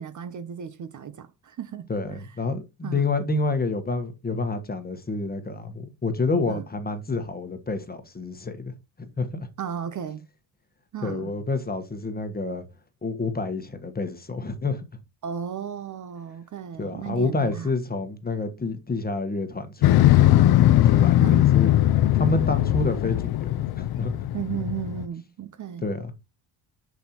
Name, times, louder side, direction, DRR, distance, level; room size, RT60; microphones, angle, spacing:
voice 1, 0.0-2.3 2.8-3.1 6.5-6.6 9.6-10.2 10.9-11.3 15.2-17.7 21.2-21.5 24.3-25.9, right 8 dB, 40° right, 0.7 m, -35 dB
voice 2, 1.9-9.5 11.0-12.6 13.0-14.8 16.8-20.4 20.8-21.7 22.2-24.1 25.8-26.1, left 3 dB, 20° left, 1.3 m, -29 dB
Motorcycle, 19.8-25.0, left 13 dB, 55° left, 0.5 m, -19 dB
6.8 x 6.4 x 2.9 m
cardioid pair, 105°, 46 cm